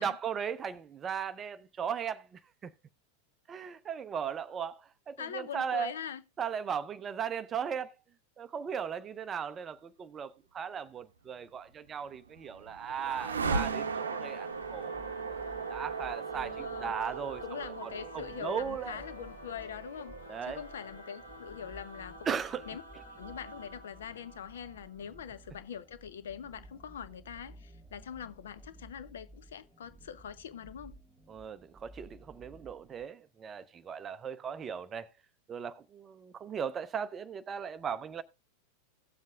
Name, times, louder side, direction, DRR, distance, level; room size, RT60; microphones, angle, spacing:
voice 1, 0.0-2.7 3.5-5.9 6.4-7.9 8.4-15.4 15.7-19.0 20.3-20.6 22.3-22.7 31.3-35.1 35.5-38.2, right 7 dB, 25° right, 0.5 m, -37 dB
voice 2, 5.2-6.2 16.3-17.0 17.4-20.1 20.4-22.4 22.7-22.8 23.2-31.0, left 8 dB, 60° left, 0.6 m, -43 dB
sound 1, 11.9-22.0, right 5 dB, 70° right, 0.7 m, -38 dB
Singing / Musical instrument, 12.8-25.7, right 2 dB, 85° left, 1.8 m, -48 dB
sound 2, 14.6-33.0, right 2 dB, 5° right, 1.7 m, -55 dB
17.0 x 7.3 x 2.3 m
figure-of-eight pair, 90°, 0 cm